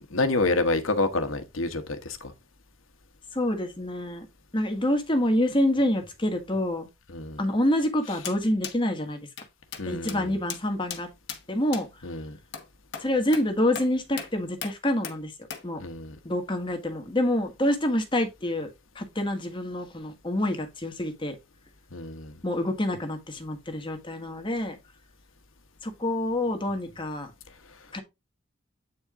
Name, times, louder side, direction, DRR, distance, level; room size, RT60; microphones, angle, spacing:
voice 1, 0.1-2.3 7.1-7.4 9.8-10.3 12.0-12.4 15.8-16.2 21.9-22.3, left 2 dB, 85° left, 1.2 m, -28 dB
voice 2, 3.3-4.3 4.5-6.9 7.4-9.3 9.9-11.1 11.5-12.0 13.0-15.3 15.6-15.8 16.2-18.7 18.9-21.4 22.4-24.7 25.8-27.3 27.9-28.0, left 1 dB, 25° left, 1.3 m, -27 dB
sound 1, 8.2-8.4 8.6-8.8 9.4-9.5 9.7-9.8 10.1-10.2 10.5-10.6 10.9-11.0 11.3-11.4 11.7-11.8 12.5-12.7 12.9-13.1 13.3-13.5 13.8-13.9 14.2-14.3 14.6-14.7 15.0-15.2 15.5-15.6, left 7 dB, 55° left, 1.2 m, -36 dB
8.5 x 4.4 x 3.6 m
head